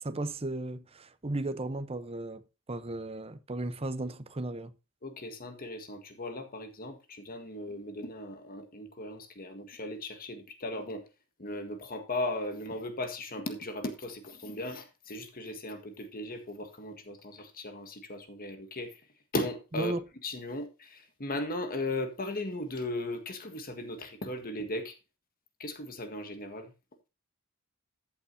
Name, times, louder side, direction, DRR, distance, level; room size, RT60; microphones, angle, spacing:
voice 1, 0.0-2.4 2.7-4.7 19.8-20.0, right 2 dB, 30° right, 0.9 m, -35 dB
voice 2, 5.0-11.0 11.4-19.0 19.3-19.9 20.2-25.0 25.6-26.7, left 1 dB, 45° left, 1.7 m, -37 dB
14.5 x 8.3 x 2.8 m
head